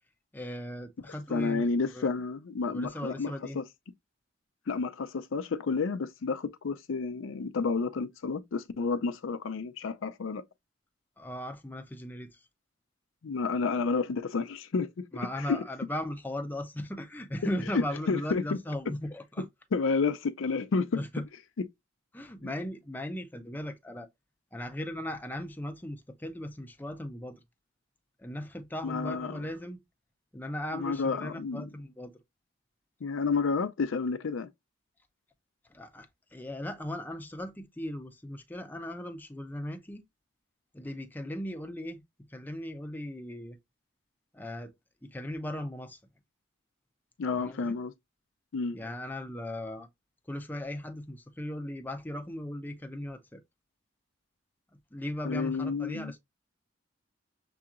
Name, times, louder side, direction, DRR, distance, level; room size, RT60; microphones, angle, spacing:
voice 1, 0.3-1.6 1.9-2.1 2.7-3.6 11.2-12.3 15.1-19.5 20.9-21.2 22.1-24.1 24.5-27.4 28.2-29.8 30.3-32.1 35.7-36.1 36.3-40.0 40.7-42.0 42.3-43.6 44.3-44.7 45.0-46.0 47.4-47.8 48.7-49.9 50.3-53.4 54.9-56.2, left 1 dB, 10° left, 0.5 m, -37 dB
voice 2, 1.3-3.6 4.7-10.5 13.2-15.1 15.4-15.7 17.7-18.6 19.7-21.0 22.4-22.5 28.8-29.3 30.7-31.6 33.0-34.5 47.2-47.9 48.5-48.8 55.2-56.1, left 4 dB, 85° left, 0.5 m, -30 dB
6.8 x 2.8 x 2.5 m
head